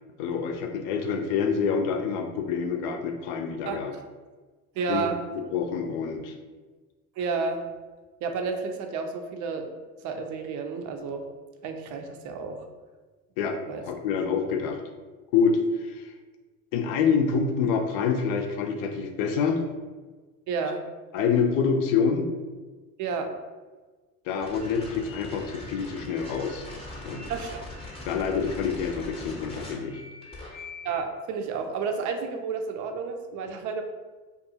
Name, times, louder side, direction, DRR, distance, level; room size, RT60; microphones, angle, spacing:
voice 1, 0.2-3.9 4.9-5.0 5.5-6.3 13.4-13.6 13.8-14.8 15.3-16.1 16.7-19.6 21.1-22.3 24.3-26.6 27.0-27.3 28.0-30.0, left 6 dB, 65° left, 4 dB, 0.5 m, -26 dB
voice 2, 4.7-5.2 7.2-7.7 8.2-9.7 10.0-11.2 11.6-12.6 13.7-13.8 20.5-20.8 23.0-23.3 27.3-27.6 30.8-33.8, right 5 dB, 45° right, 5 dB, 0.5 m, -31 dB
sound 1, 24.4-31.0, left 2 dB, 15° left, 0.7 m, -41 dB
2.5 x 2.3 x 2.7 m, 1.3 s
hypercardioid pair, 75°, 44 cm